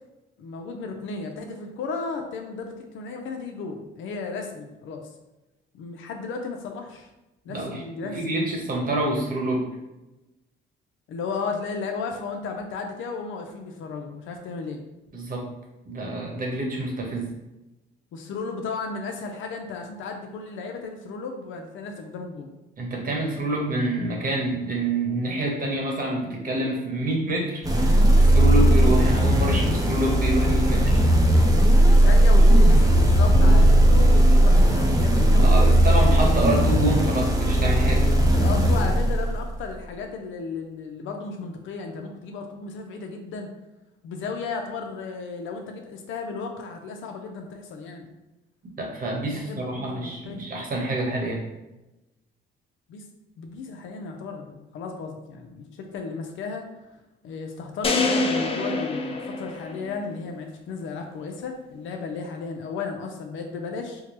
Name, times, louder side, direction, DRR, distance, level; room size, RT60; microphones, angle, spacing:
voice 1, 0.4-5.1 5.7-7.1 7.4-8.4 11.1-14.8 18.1-22.5 28.5-28.7 31.9-35.7 38.3-43.5 44.0-48.1 49.3-50.4 52.9-53.0 53.4-56.7 57.2-64.0, left 4 dB, 80° left, 3 dB, 0.5 m, -34 dB
voice 2, 7.5-9.7 15.1-15.5 15.9-17.3 22.8-27.6 27.9-31.0 35.3-38.1 48.8-51.4, right 1 dB, 45° right, 0 dB, 1.1 m, -27 dB
sound 1, 27.6-39.6, right 1 dB, 20° right, 0.6 m, -17 dB
sound 2, 57.8-60.1, left 3 dB, 30° left, 0.5 m, -26 dB
4.5 x 2.2 x 3.0 m, 1.0 s
cardioid pair, 90°, 20 cm